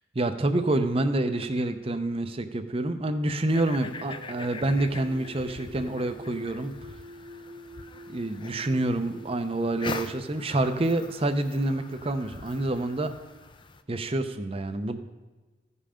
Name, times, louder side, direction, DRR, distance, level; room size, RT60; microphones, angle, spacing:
voice 1, 0.1-6.7 8.1-13.1 13.9-15.0, right 2 dB, 30° right, 9 dB, 0.6 m, -27 dB
sound 1, 3.4-10.8, equal, 85° right, 0.8 m, -47 dB
sound 2, 3.5-13.8, left 3 dB, 25° left, 0.5 m, -43 dB
15.5 x 5.6 x 5.0 m, 1.2 s
head